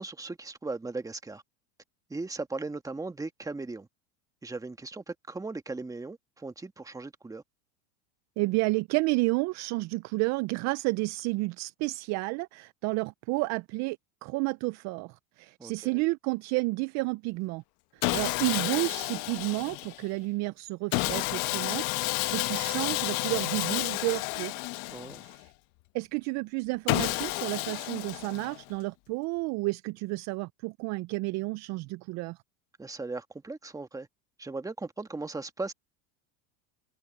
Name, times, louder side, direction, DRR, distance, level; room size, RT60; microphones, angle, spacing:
voice 1, 0.0-1.4 2.1-3.9 4.4-7.4 15.6-16.0 24.9-25.3 32.8-34.1 34.4-35.7, right 3 dB, 10° right, 1.5 m, -38 dB
voice 2, 8.4-14.0 14.2-17.6 17.9-24.5 25.2-25.5 25.9-32.4, right 24 dB, 40° right, 0.4 m, -31 dB
Sawing, 18.0-20.1 20.9-25.5 26.9-28.7, left 23 dB, 55° left, 1.1 m, -31 dB
supercardioid pair, 125°, 43 cm